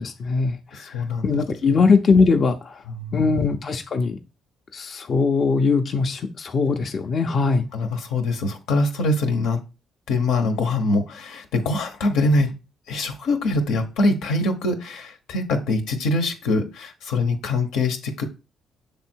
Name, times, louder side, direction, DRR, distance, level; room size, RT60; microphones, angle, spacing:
voice 1, 0.0-0.9 1.2-2.8 3.1-4.2 4.7-7.7, left 4 dB, 50° left, 4 dB, 0.6 m, -21 dB
voice 2, 0.7-1.4 2.9-3.4 7.7-9.6 10.1-12.5 12.9-18.2, left 2 dB, 90° left, 5 dB, 1.1 m, -23 dB
6.9 x 3.4 x 4.5 m, 0.29 s
cardioid pair, 90°, 0 cm